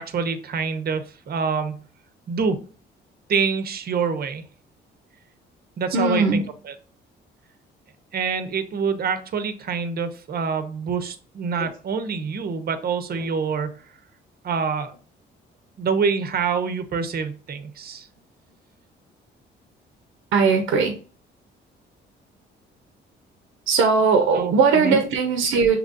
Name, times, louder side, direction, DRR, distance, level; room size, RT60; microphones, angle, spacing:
voice 1, 0.0-1.8 2.3-2.6 3.3-4.4 5.8-6.7 8.1-13.8 14.4-14.9 15.8-18.1 24.3-25.0, right 5 dB, 50° right, 0.8 m, -26 dB
voice 2, 5.9-6.4 11.6-11.7 20.3-20.9 23.7-25.8, right 4 dB, 90° right, 0.8 m, -19 dB
6.3 x 3.0 x 2.5 m
cardioid pair, 90°, 20 cm